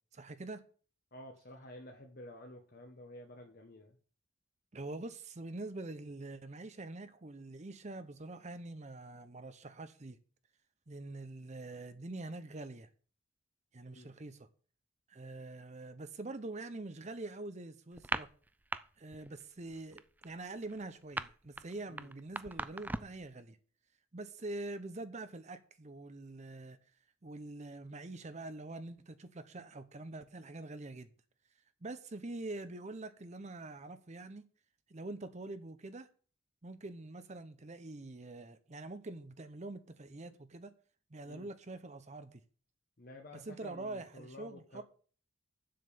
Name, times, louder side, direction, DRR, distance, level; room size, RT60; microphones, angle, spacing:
voice 1, 0.1-0.6 4.7-10.2 10.9-12.9 13.7-14.5 15.1-18.3 19.0-23.6 24.1-26.8 27.2-31.1 31.8-34.5 34.9-36.1 36.6-40.7 41.1-42.4 43.3-44.8, right 2 dB, 35° right, 0.7 m, -45 dB
voice 2, 1.1-4.0 13.9-14.1 21.9-22.1 41.3-41.5 43.0-44.8, left 1 dB, 50° left, 1.2 m, -51 dB
sound 1, 17.9-18.8 19.1-19.4 19.7-23.2, right 2 dB, 10° right, 0.4 m, -39 dB
7.7 x 7.5 x 6.8 m
head